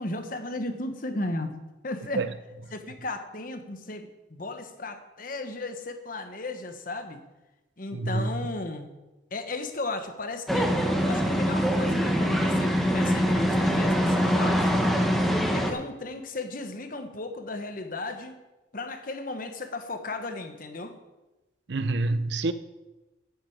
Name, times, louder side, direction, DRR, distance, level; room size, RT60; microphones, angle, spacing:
voice 1, 0.0-1.6 1.8-2.2 2.7-7.2 7.8-8.9 9.3-10.7 11.0-14.7 15.5-18.3 18.7-21.0, left 2 dB, 45° left, 1.1 m, -35 dB
voice 2, 7.9-8.3 21.7-22.5, right 2 dB, 65° right, 0.6 m, -27 dB
sound 1, 10.5-15.7, equal, ahead, 1.0 m, -24 dB
8.2 x 7.5 x 8.6 m
head